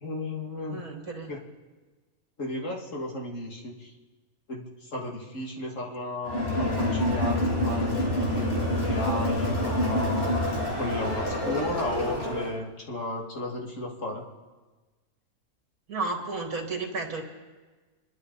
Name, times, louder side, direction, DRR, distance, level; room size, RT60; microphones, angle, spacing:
voice 1, 0.0-0.8 1.3-1.4 2.4-3.9 4.5-4.6 4.9-10.3 10.8-14.2, left 2 dB, 60° left, -1 dB, 2.7 m, -34 dB
voice 2, 0.7-1.3 15.9-17.2, right 3 dB, 70° right, 2 dB, 2.7 m, -32 dB
Crowd, 6.2-12.5, left 1 dB, 40° left, 3.3 m, -27 dB
27.0 x 12.5 x 4.1 m, 1.3 s
omnidirectional pair, 1.5 m